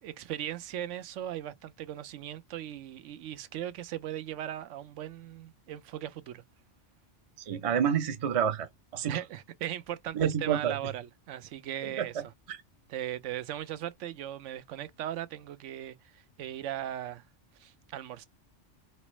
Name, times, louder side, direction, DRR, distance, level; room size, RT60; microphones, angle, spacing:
voice 1, 0.0-6.4 9.1-12.2 12.9-17.2 17.6-18.3, right 11 dB, 90° right, 0.9 m, -38 dB
voice 2, 7.5-8.7 8.9-9.2 10.1-10.7 11.8-12.6, right 8 dB, 40° right, 0.5 m, -29 dB
4.3 x 2.0 x 3.0 m
omnidirectional pair, 1.2 m